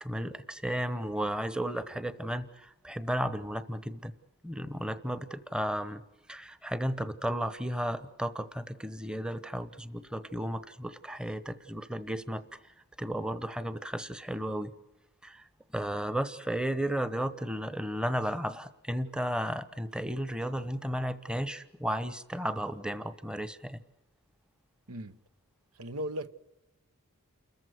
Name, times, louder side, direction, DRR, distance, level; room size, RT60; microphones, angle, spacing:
voice 1, 0.0-4.1 4.4-6.0 6.3-12.4 13.0-14.7 15.2-15.4 15.7-23.8, equal, 5° right, 1.0 m, -34 dB
voice 2, 24.9-25.2 25.7-26.3, equal, 80° right, 1.1 m, -37 dB
29.0 x 14.5 x 9.3 m
head